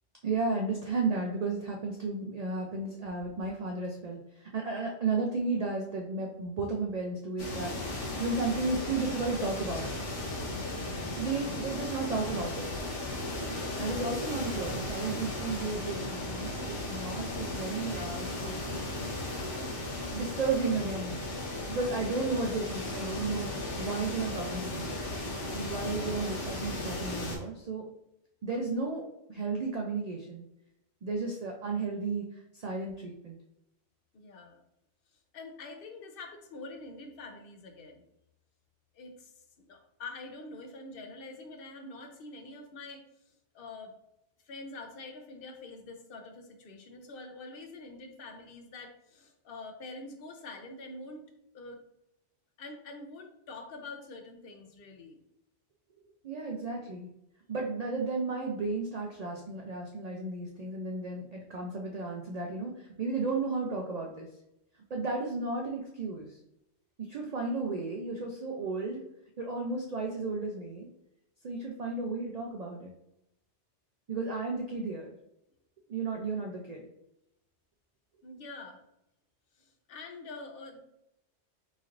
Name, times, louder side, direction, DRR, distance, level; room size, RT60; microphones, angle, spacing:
voice 1, 0.2-9.9 11.1-12.7 13.8-18.6 20.1-21.2 21.7-23.5 23.8-25.0 25.5-27.9 28.4-29.0 29.3-30.4 31.0-32.2 32.5-33.4 56.2-57.1 57.5-64.3 64.9-66.4 67.0-69.1 69.4-70.9 71.4-72.9 74.1-75.1 75.9-76.9, right 3 dB, 65° right, 1 dB, 0.4 m, -33 dB
sound 1, 7.4-27.4, left 2 dB, 85° left, 1.2 m, -36 dB
voice 2, 34.1-34.6 35.3-38.1 38.9-39.3 39.6-43.0 43.5-43.9 44.5-51.3 51.5-51.8 52.6-55.2 56.5-56.6 78.2-78.8 79.6-80.8, left 3 dB, 60° left, 4 dB, 0.8 m, -45 dB
4.0 x 3.1 x 2.4 m, 0.84 s
omnidirectional pair, 1.2 m